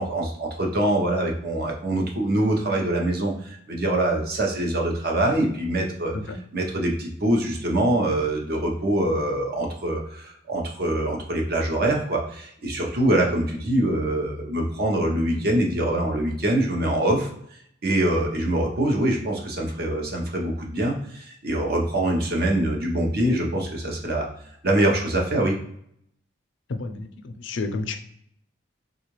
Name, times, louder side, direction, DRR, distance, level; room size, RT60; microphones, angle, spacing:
voice 1, 0.0-17.3 17.8-24.3 24.6-25.6, right 1 dB, 50° right, 0 dB, 0.7 m, -24 dB
voice 2, 26.8-28.0, left 3 dB, 70° left, 6 dB, 0.4 m, -31 dB
3.6 x 2.4 x 3.0 m, 0.69 s
head